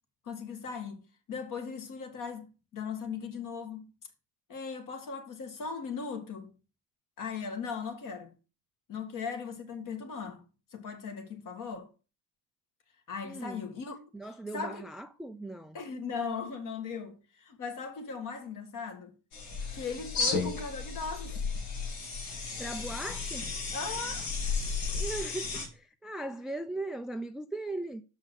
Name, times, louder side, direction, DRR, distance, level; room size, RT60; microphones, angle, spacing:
voice 1, 0.2-3.9 4.5-6.5 7.2-8.3 8.9-10.4 10.7-11.9 13.1-14.9 15.7-19.1 19.7-21.4 23.7-24.6, left 5 dB, 45° left, 2.1 m, -38 dB
voice 2, 13.2-13.6 14.1-15.8 22.6-23.5 24.9-28.0, right 2 dB, ahead, 0.3 m, -38 dB
sound 1, 19.3-25.7, left 4 dB, 80° left, 2.9 m, -34 dB
6.5 x 5.5 x 6.4 m
supercardioid pair, 95°, 42 cm